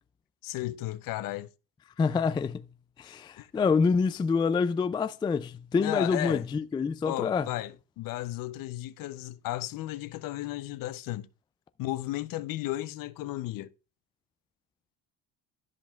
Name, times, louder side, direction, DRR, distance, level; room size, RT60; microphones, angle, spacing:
voice 1, 0.4-1.5 3.4-3.5 5.8-6.4 7.0-11.3 11.8-13.7, left 16 dB, 55° left, 0.7 m, -34 dB
voice 2, 2.0-2.6 3.0-7.5, left 5 dB, 15° left, 0.3 m, -27 dB
13.0 x 5.3 x 2.4 m
supercardioid pair, 90°, 39 cm